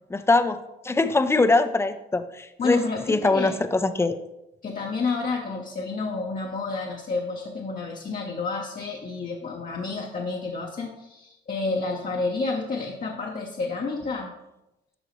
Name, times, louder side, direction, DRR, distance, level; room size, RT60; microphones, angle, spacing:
voice 1, 0.1-0.6 0.8-2.8 3.1-4.2, left 3 dB, 15° left, 10 dB, 0.5 m, -22 dB
voice 2, 2.6-3.6 4.6-14.3, left 3 dB, 40° left, 0 dB, 0.9 m, -30 dB
11.5 x 3.9 x 3.1 m, 0.92 s
cardioid pair, 90°, 20 cm